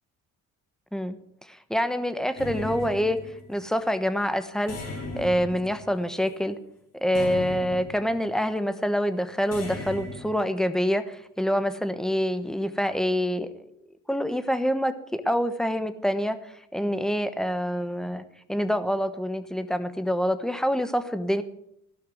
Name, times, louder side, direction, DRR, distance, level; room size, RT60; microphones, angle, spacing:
voice 1, 1.5-3.2 3.5-4.8 5.2-6.6 6.9-13.5 14.1-21.4, equal, ahead, 11 dB, 1.1 m, -26 dB
sound 1, 2.4-3.7 4.7-6.4 7.1-8.3 9.5-10.4, left 2 dB, 55° left, 3.2 m, -37 dB
16.0 x 5.8 x 8.0 m, 0.76 s
cardioid pair, 90°, 30 cm